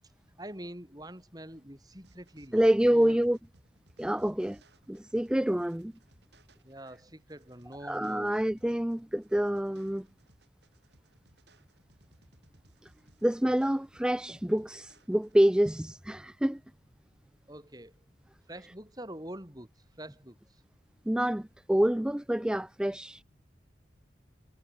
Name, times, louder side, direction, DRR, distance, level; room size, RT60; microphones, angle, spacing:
voice 1, 0.4-3.2 6.6-8.3 17.5-17.9 18.5-19.7 20.0-20.6, right 1 dB, 20° right, 4.3 m, -45 dB
sound 1, 2.0-15.7, right 2 dB, 65° right, 5.1 m, -64 dB
voice 2, 2.5-3.4 4.0-4.6 4.9-5.9 7.8-10.1 12.8-12.9 13.2-16.6 21.1-23.2, equal, 5° right, 0.3 m, -27 dB
head